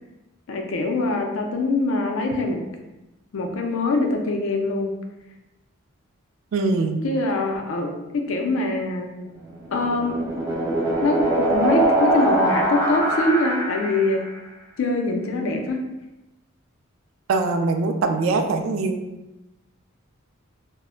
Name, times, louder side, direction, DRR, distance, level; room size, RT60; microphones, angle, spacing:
voice 1, 0.5-2.6 3.3-4.9 7.0-9.1 9.7-10.2 11.0-14.2 14.8-15.8, left 2 dB, 80° left, 3 dB, 0.4 m, -23 dB
voice 2, 6.5-7.0 17.3-19.0, right 3 dB, 75° right, 5 dB, 0.3 m, -22 dB
sound 1, 9.4-14.2, right 1 dB, 15° right, 0.5 m, -22 dB
2.1 x 2.0 x 3.6 m, 1.0 s
head